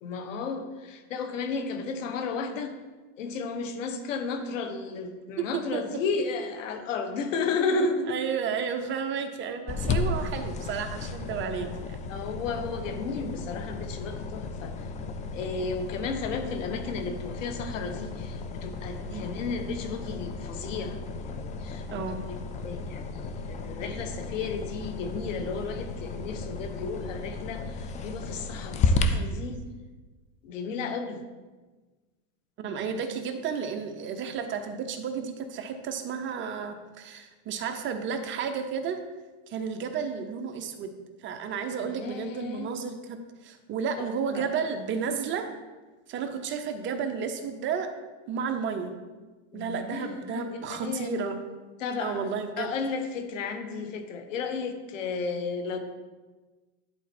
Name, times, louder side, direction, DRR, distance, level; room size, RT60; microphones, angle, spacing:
voice 1, 0.0-2.7 3.2-8.2 12.1-14.9 15.3-22.4 22.6-29.6 30.4-31.2 41.8-42.7 44.0-44.5 49.5-51.1 51.8-52.3 52.6-55.8, left 4 dB, 85° left, 6 dB, 1.3 m, -33 dB
voice 2, 8.1-11.9 19.1-19.2 21.9-22.2 32.6-39.0 39.5-40.9 41.2-43.2 43.4-45.5 46.1-47.9 48.3-49.0 49.5-51.4 52.0-52.7, right 6 dB, 30° right, 6 dB, 0.8 m, -32 dB
sound 1, 9.7-29.0, left 4 dB, 20° left, 0.4 m, -34 dB
10.5 x 4.1 x 4.3 m, 1.3 s
supercardioid pair, 135°, 37 cm